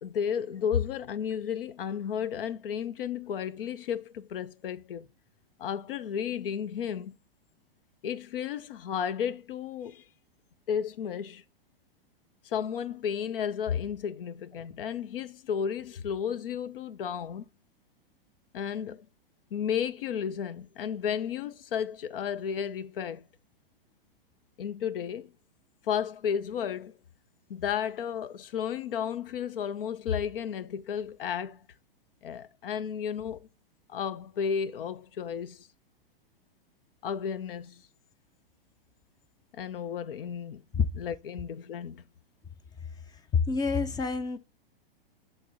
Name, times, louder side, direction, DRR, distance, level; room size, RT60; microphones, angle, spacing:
voice 1, 0.0-5.1 5.6-7.2 8.0-10.0 10.7-11.4 12.4-17.5 18.5-19.1 19.5-23.3 24.6-25.3 25.9-26.9 27.5-31.6 32.2-33.5 33.9-35.7 37.0-37.8 39.5-40.6 41.0-42.0, left 8 dB, 70° left, 0.7 m, -33 dB
voice 2, 43.1-44.4, left 5 dB, 15° left, 0.5 m, -28 dB
8.4 x 3.6 x 4.0 m
hypercardioid pair, 115°, 29 cm